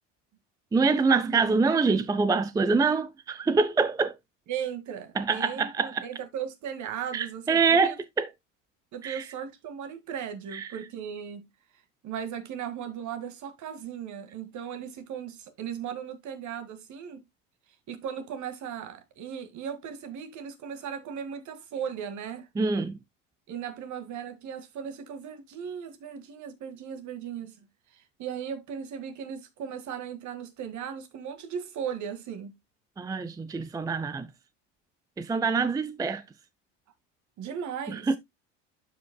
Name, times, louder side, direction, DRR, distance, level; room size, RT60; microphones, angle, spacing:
voice 1, 0.7-4.1 5.2-6.1 7.1-8.3 9.0-9.3 10.5-10.8 22.6-23.0 33.0-34.3 35.2-36.2 37.9-38.2, right 4 dB, 10° right, 0.5 m, -25 dB
voice 2, 4.5-8.0 8.9-11.4 12.0-17.2 17.9-22.5 23.5-27.6 27.9-32.5 37.4-38.2, right 8 dB, 50° right, 1.9 m, -37 dB
12.0 x 5.1 x 2.2 m
hypercardioid pair, 80°, 37 cm